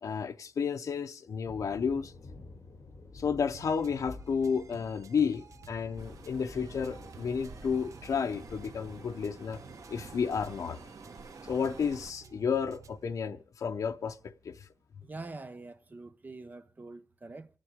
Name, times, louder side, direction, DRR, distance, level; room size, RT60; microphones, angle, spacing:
voice 1, 0.0-2.1 3.1-9.6 9.9-10.8 11.4-14.7, left 6 dB, 75° left, 0.7 m, -32 dB
sound 1, 1.4-10.9, left 3 dB, 50° left, 3.5 m, -51 dB
sound 2, 3.5-13.1, right 6 dB, 65° right, 0.8 m, -54 dB
sound 3, 6.0-12.1, right 4 dB, 85° right, 2.0 m, -49 dB
voice 2, 15.0-17.5, right 3 dB, 30° right, 0.9 m, -45 dB
29.5 x 9.9 x 3.6 m
wide cardioid pair, 175°, 6 cm